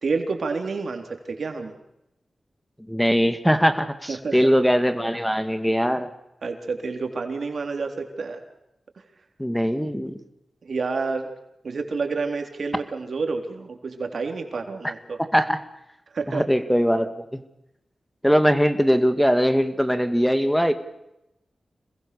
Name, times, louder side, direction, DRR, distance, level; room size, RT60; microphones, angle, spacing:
voice 1, 0.0-1.7 4.1-4.5 6.4-8.4 10.6-11.3 11.6-15.2 16.1-16.4, right 4 dB, 70° right, 5 dB, 3.6 m, -29 dB
voice 2, 2.9-6.1 9.4-10.2 14.8-14.9 15.3-15.6 16.3-17.4 18.2-20.7, equal, 5° left, 10 dB, 1.9 m, -21 dB
27.0 x 21.0 x 6.9 m, 0.86 s
cardioid pair, 55°, 0 cm